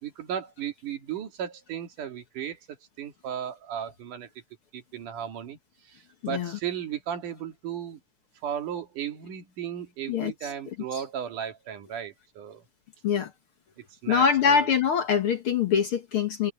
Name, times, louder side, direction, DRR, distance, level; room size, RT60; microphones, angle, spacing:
voice 1, 0.0-4.3 4.7-5.6 5.9-8.0 8.4-12.6 14.0-14.7, right 9 dB, 85° right, 3.7 m, -35 dB
voice 2, 6.2-6.6 10.1-10.5 13.0-13.3 14.1-16.5, left 7 dB, 55° left, 1.7 m, -24 dB
omnidirectional pair, 3.5 m